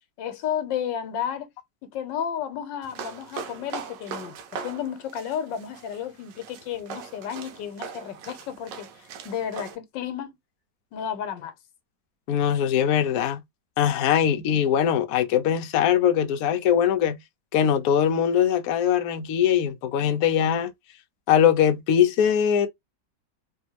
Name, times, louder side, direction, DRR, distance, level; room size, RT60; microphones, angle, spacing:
voice 1, 0.2-1.5 1.8-10.4 10.9-11.5, left 8 dB, 90° left, 1.5 m, -32 dB
sound 1, 2.8-9.8, right 6 dB, 75° right, 1.3 m, -40 dB
voice 2, 12.3-13.4 13.8-17.2 17.5-20.7 21.3-22.7, left 9 dB, 65° left, 0.9 m, -21 dB
3.4 x 2.6 x 2.8 m
omnidirectional pair, 1.9 m